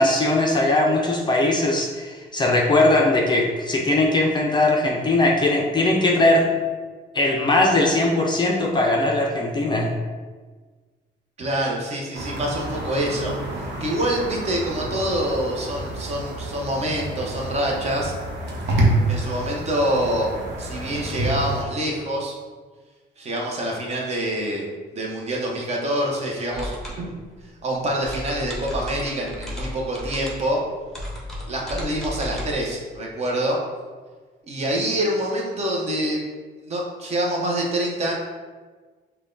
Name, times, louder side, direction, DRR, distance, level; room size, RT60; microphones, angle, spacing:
voice 1, 0.0-6.5 7.1-9.9, left 2 dB, 25° left, -1 dB, 0.4 m, -20 dB
voice 2, 11.4-13.4 13.8-18.1 19.1-20.3 20.6-22.4 23.2-24.7 24.9-27.1 27.6-30.6 31.4-33.6 34.5-36.2 36.7-38.1, right 1 dB, 35° right, -1 dB, 0.8 m, -26 dB
sound 1, 12.1-21.6, right 1 dB, 70° right, 1.0 m, -28 dB
sound 2, 26.5-32.5, left 1 dB, ahead, 0.8 m, -34 dB
5.8 x 2.2 x 3.8 m, 1.4 s
cardioid pair, 165°, 18 cm